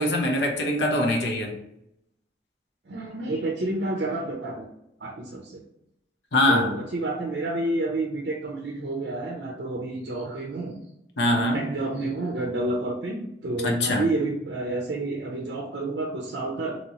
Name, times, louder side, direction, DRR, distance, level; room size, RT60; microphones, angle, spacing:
voice 1, 0.0-1.6 6.3-6.8 11.2-11.7 13.6-14.1, left 1 dB, 75° left, 1 dB, 0.8 m, -23 dB
voice 2, 2.9-4.7 5.0-5.6 6.5-10.8 11.3-16.8, right 2 dB, 65° right, 0 dB, 0.5 m, -29 dB
2.9 x 2.8 x 3.0 m, 0.81 s
head